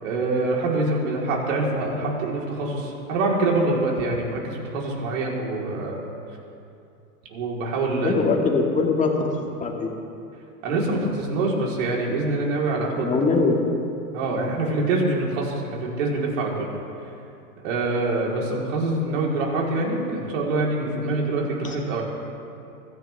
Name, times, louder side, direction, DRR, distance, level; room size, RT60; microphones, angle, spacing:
voice 1, 0.0-6.0 7.3-8.2 10.6-13.1 14.1-16.7 17.6-22.0, right 2 dB, 55° right, -2 dB, 4.4 m, -25 dB
voice 2, 8.0-9.9 13.0-13.8 21.6-21.7, left 3 dB, 15° left, 1 dB, 2.4 m, -22 dB
23.5 x 15.5 x 3.6 m, 2.6 s
hypercardioid pair, 110°, 46 cm